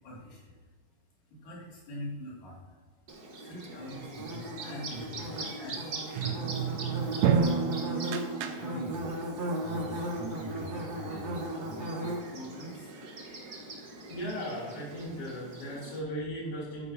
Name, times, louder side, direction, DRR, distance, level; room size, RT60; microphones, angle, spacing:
voice 1, 0.0-0.6 1.3-2.7 3.3-6.7 7.0-7.6 8.6-9.2 9.6-13.7, equal, 80° left, -5 dB, 4.1 m, -44 dB
Bird / Buzz, 3.1-16.0, right 1 dB, 65° right, 0.9 m, -37 dB
sound 1, 6.2-9.1, right 7 dB, 80° right, 2.2 m, -30 dB
voice 2, 14.1-16.9, equal, 45° left, -6 dB, 3.9 m, -37 dB
11.5 x 9.3 x 2.8 m, 1.4 s
omnidirectional pair, 3.8 m